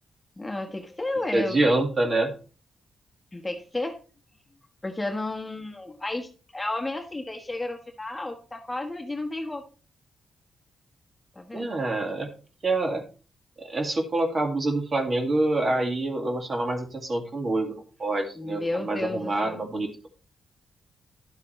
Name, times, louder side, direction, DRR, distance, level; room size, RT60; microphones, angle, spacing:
voice 1, 0.4-1.6 3.3-4.0 4.8-9.6 11.3-11.7 18.3-19.6, left 2 dB, 15° left, 3 dB, 1.3 m, -32 dB
voice 2, 1.3-2.3 11.5-12.3 12.6-13.0 13.6-20.1, right 2 dB, 40° right, 4 dB, 2.1 m, -26 dB
11.0 x 7.5 x 3.2 m, 0.35 s
cardioid pair, 95°, 0 cm